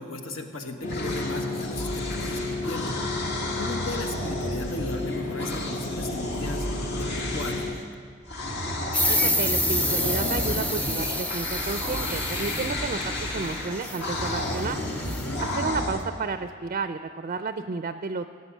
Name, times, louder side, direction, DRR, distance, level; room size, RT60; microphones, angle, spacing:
voice 1, 0.0-2.9 3.6-6.7 6.9-7.9 15.0-15.4, left 2 dB, 75° left, 4 dB, 1.4 m, -36 dB
sound 1, 0.8-7.7, left 2 dB, 40° left, 1.3 m, -33 dB
sound 2, 0.9-7.8 8.3-16.0, left 1 dB, 60° left, 1.9 m, -32 dB
sound 3, 8.9-15.4, left 1 dB, 5° left, 0.5 m, -29 dB
voice 2, 9.1-14.8 15.4-18.3, right 4 dB, 40° right, 10 dB, 0.4 m, -32 dB
17.5 x 8.4 x 7.3 m, 2.1 s
head